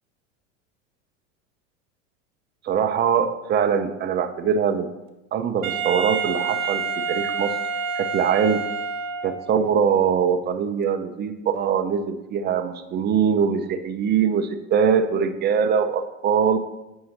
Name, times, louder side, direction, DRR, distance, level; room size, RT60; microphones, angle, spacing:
voice 1, 2.6-4.9 5.3-7.5 7.9-8.7 9.2-16.6, right 7 dB, 25° right, 9 dB, 0.6 m, -22 dB
Wind instrument woodwind instrument, 5.6-9.5, right 5 dB, 80° right, 0.8 m, -28 dB
9.1 x 5.5 x 2.9 m, 0.99 s
hypercardioid pair, 95°, 37 cm